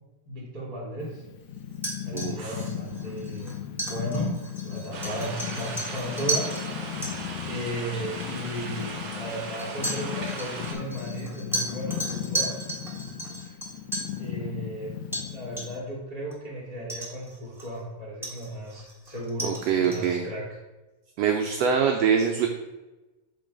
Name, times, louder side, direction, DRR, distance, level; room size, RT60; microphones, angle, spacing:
voice 1, 0.2-1.2 2.0-3.6 3.8-6.5 7.4-12.5 13.4-13.5 14.2-14.9 15.2-20.6, equal, 25° left, -5 dB, 0.8 m, -35 dB
Purr, 1.0-15.8, left 10 dB, 75° left, 1.9 m, -36 dB
sound 1, 1.7-6.6 7.0-7.1 8.2-8.3 9.6-14.2 15.1-15.3 15.6-15.9 16.3-16.4 16.9-17.8 18.2-20.1, right 1 dB, 5° right, 0.4 m, -34 dB
voice 2, 2.1-2.6 19.4-20.3 21.2-22.5, right 7 dB, 85° right, 3 dB, 1.4 m, -24 dB
sound 2, 4.9-10.7, right 3 dB, 50° right, 1.8 m, -38 dB
7.4 x 3.8 x 5.1 m, 1.1 s
omnidirectional pair, 3.5 m